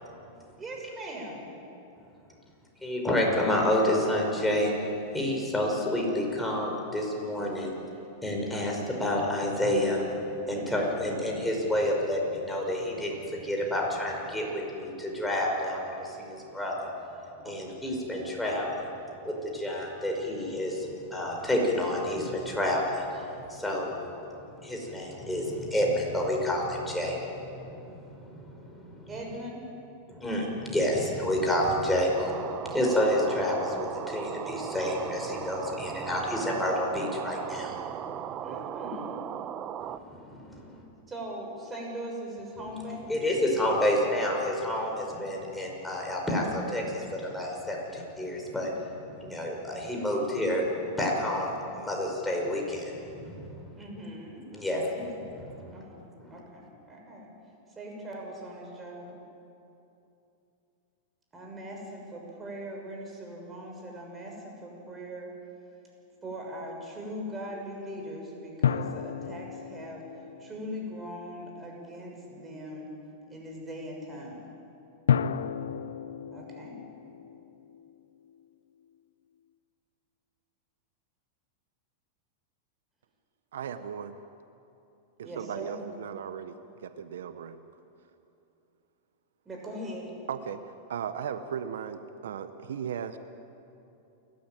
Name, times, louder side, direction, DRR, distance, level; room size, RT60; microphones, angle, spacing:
voice 1, 0.6-1.5 10.5-10.8 17.4-17.7 29.1-29.6 38.4-39.4 41.1-43.1 53.7-54.5 54.7-55.2 55.7-57.3 57.7-59.1 61.3-65.3 66.2-72.9 73.3-74.5 76.3-76.8 85.2-85.9 89.4-90.1, equal, 20° right, 0 dB, 6.7 m, -40 dB
voice 2, 2.8-4.7 5.1-7.7 8.2-16.9 17.4-18.9 19.2-23.9 24.6-29.1 30.1-38.4 39.8-40.8 43.1-53.8 54.5-54.8 55.6-55.8 56.2-56.4, left 1 dB, 5° left, -1 dB, 5.6 m, -29 dB
sound 1, 32.1-40.0, right 10 dB, 35° right, 0.9 m, -37 dB
sound 2, 68.6-71.5 75.1-78.4, left 8 dB, 90° left, 0.7 m, -32 dB
voice 3, 83.5-84.2 85.2-87.6 90.3-93.2, right 8 dB, 80° right, 10 dB, 1.0 m, -37 dB
29.0 x 12.5 x 9.2 m, 2.8 s
hypercardioid pair, 120°, 0 cm